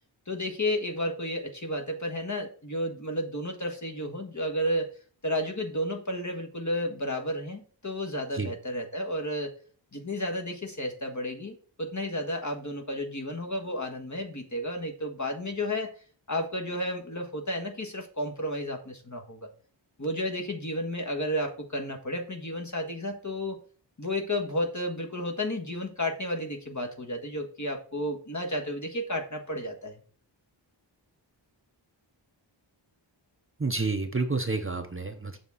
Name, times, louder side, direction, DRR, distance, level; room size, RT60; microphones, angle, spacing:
voice 1, 0.3-4.9 5.2-9.5 9.9-15.9 16.3-19.5 20.0-23.6 24.0-30.0, left 1 dB, 40° left, 2 dB, 1.5 m, -32 dB
voice 2, 33.6-35.4, right 3 dB, 25° right, 7 dB, 0.8 m, -29 dB
7.2 x 3.6 x 5.5 m, 0.42 s
wide cardioid pair, 50°, 47 cm